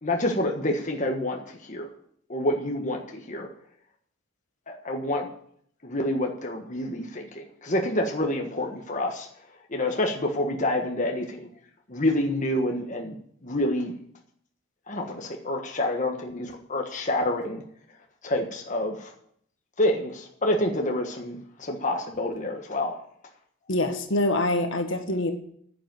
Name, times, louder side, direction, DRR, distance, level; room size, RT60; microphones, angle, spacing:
voice 1, 0.0-1.9 2.3-3.5 4.7-5.3 5.8-9.3 9.7-11.5 11.9-13.2 13.4-13.9 14.9-17.6 18.2-19.1 19.8-23.0, left 1 dB, 35° left, 2 dB, 1.4 m, -28 dB
voice 2, 23.7-25.3, left 1 dB, 65° left, 5 dB, 1.6 m, -25 dB
10.0 x 7.7 x 9.2 m, 0.66 s
head